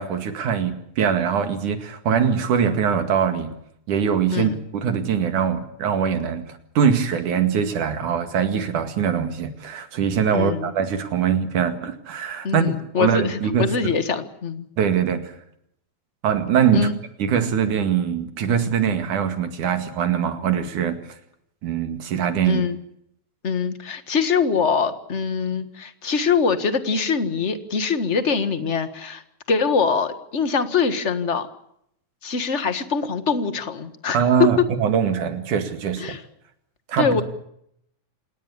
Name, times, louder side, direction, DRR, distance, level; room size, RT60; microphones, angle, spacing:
voice 1, 0.0-3.6 3.9-6.5 6.7-13.9 14.8-15.3 16.2-16.9 17.2-21.0 21.6-22.6 34.1-36.0 36.9-37.2, right 7 dB, 75° right, 9 dB, 3.5 m, -22 dB
voice 2, 10.3-10.7 12.4-14.7 16.7-17.0 22.4-22.8 23.4-29.2 29.5-31.5 32.2-34.7 36.0-36.2 37.0-37.2, left 5 dB, 35° left, 11 dB, 1.3 m, -23 dB
28.0 x 19.5 x 7.2 m, 0.73 s
omnidirectional pair, 3.6 m